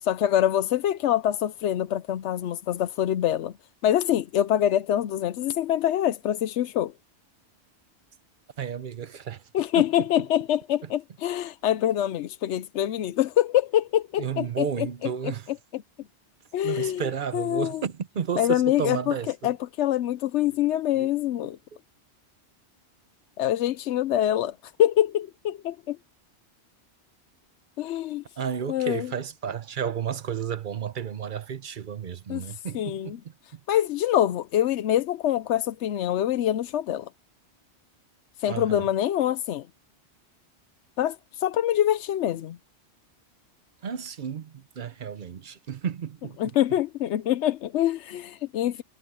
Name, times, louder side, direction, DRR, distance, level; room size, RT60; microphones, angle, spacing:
voice 1, 0.0-3.5 3.8-6.9 9.5-15.1 15.7-15.8 16.5-17.1 17.3-17.8 18.4-19.1 19.4-21.6 23.4-26.0 27.8-28.2 28.7-29.1 32.3-33.2 33.7-37.1 38.4-39.7 41.0-42.6 46.4-48.8, left 11 dB, 85° left, 0.9 m, -25 dB
voice 2, 8.6-9.4 9.7-9.9 14.2-15.5 16.6-19.5 20.9-21.1 28.4-33.2 33.5-33.6 38.5-38.9 43.8-46.6, right 7 dB, 50° right, 0.8 m, -32 dB
omnidirectional pair, 1.2 m